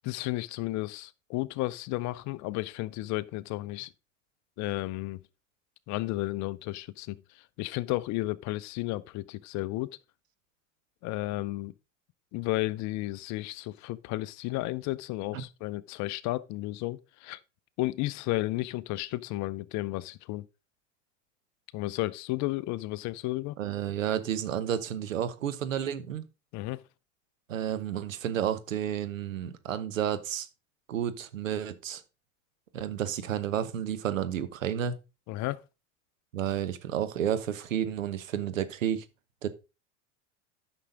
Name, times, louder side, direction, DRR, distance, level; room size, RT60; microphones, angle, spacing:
voice 1, 0.0-3.9 4.6-5.2 5.9-9.9 11.0-11.7 12.3-17.4 17.8-20.5 21.7-23.6 26.5-26.8 35.3-35.6, left 18 dB, 50° left, 0.7 m, -33 dB
voice 2, 23.6-26.3 27.5-30.5 30.9-32.0 32.7-34.9 36.3-39.0 39.4-39.5, right 9 dB, 85° right, 1.1 m, -31 dB
9.9 x 6.2 x 3.9 m
hypercardioid pair, 85°, 38 cm